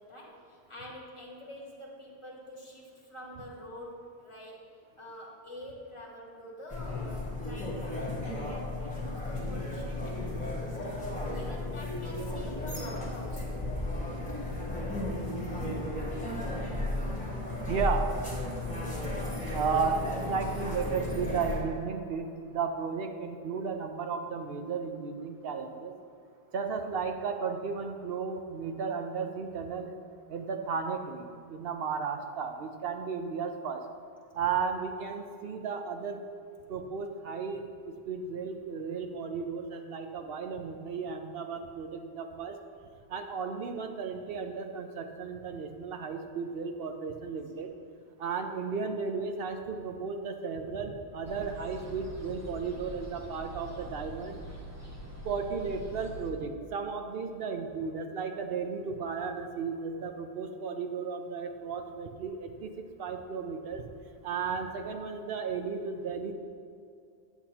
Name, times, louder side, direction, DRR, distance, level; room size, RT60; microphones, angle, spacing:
voice 1, 0.0-4.7 5.0-13.5, left 1 dB, 30° left, -3 dB, 1.3 m, -47 dB
sound 1, 6.7-21.6, left 1 dB, 10° left, 1.4 m, -34 dB
voice 2, 16.7-19.0 19.5-25.9 26.5-30.0 30.3-31.2 31.5-33.8 34.3-36.2 36.7-37.7 38.1-42.6 43.1-47.7 48.2-54.4 55.2-63.8 64.2-66.3, right 5 dB, 70° right, 6 dB, 0.9 m, -34 dB
sound 2, 51.2-56.3, right 1 dB, 15° right, 0.8 m, -44 dB
8.7 x 8.1 x 2.9 m, 2.5 s
omnidirectional pair, 1.1 m